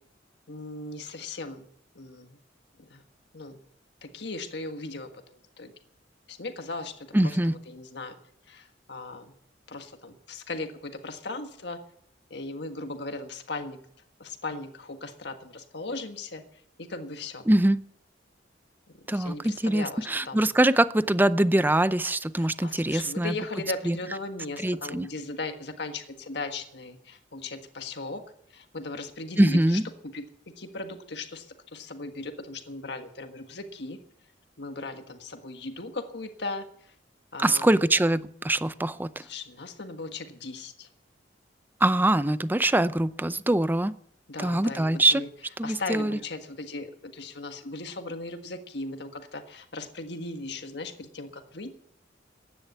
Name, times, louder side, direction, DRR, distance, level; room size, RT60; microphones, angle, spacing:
voice 1, 0.5-1.7 1.9-2.4 2.8-3.0 3.3-3.6 4.0-5.7 6.3-8.2 8.5-9.3 9.7-11.8 12.3-13.8 14.2-17.5 19.0-20.5 22.4-28.2 28.5-30.3 30.6-34.0 34.6-36.9 37.3-37.8 39.2-40.9 44.3-45.3 45.6-51.7, left 3 dB, 65° left, 6 dB, 1.6 m, -38 dB
voice 2, 7.1-7.5 17.5-17.8 19.1-23.3 23.8-24.0 24.6-25.1 29.4-29.8 37.4-39.1 41.8-43.9 44.4-45.2 45.6-46.2, right 1 dB, 10° right, 15 dB, 0.5 m, -23 dB
15.5 x 10.0 x 8.2 m, 0.69 s
head